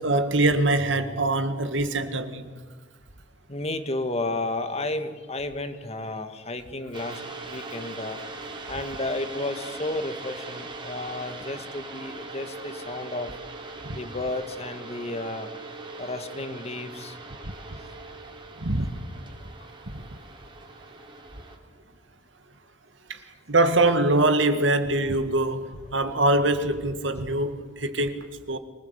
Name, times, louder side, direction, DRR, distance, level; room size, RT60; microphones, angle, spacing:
voice 1, 0.0-2.5 13.9-14.0 18.6-18.9 19.9-20.0 23.1-23.2 23.5-28.6, right 2 dB, 75° right, 1.8 m, -23 dB
voice 2, 3.5-8.2 8.7-13.3 13.9-15.5 15.9-17.2, left 2 dB, 35° left, 1.8 m, -32 dB
sound 1, 6.9-21.6, right 3 dB, 25° right, 3.0 m, -41 dB
25.0 x 20.0 x 8.3 m
head